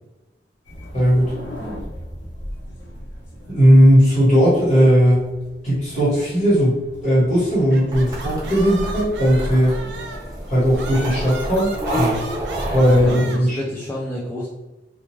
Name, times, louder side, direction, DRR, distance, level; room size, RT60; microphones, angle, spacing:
sound 1, 0.6-12.7, left 1 dB, 85° left, 0.9 m, -36 dB
voice 1, 0.9-1.3 3.5-5.2 5.6-6.8 7.0-9.8 10.5-11.7 12.0-12.2 12.7-13.6, equal, 45° left, -8 dB, 1.5 m, -16 dB
sound 2, 7.5-10.3 10.7-13.4, right 3 dB, 75° right, 0.4 m, -36 dB
sound 3, 7.9-13.1, right 1 dB, 20° right, 0.8 m, -29 dB
voice 2, 12.8-14.5, left 1 dB, 15° left, -7 dB, 0.4 m, -30 dB
2.4 x 2.3 x 3.1 m, 1.0 s
head